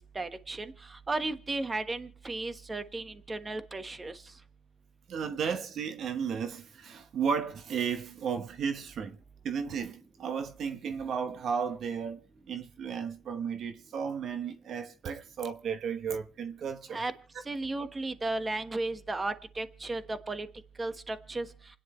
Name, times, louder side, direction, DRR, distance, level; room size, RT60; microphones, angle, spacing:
voice 1, 0.1-4.2 16.9-17.1 17.4-20.5 20.8-21.5, right 2 dB, 25° right, 1.3 m, -34 dB
voice 2, 5.1-9.2 9.4-12.2 12.5-17.0, right 6 dB, 65° right, 1.0 m, -34 dB
28.5 x 10.0 x 3.2 m
cardioid pair, 90°, 0 cm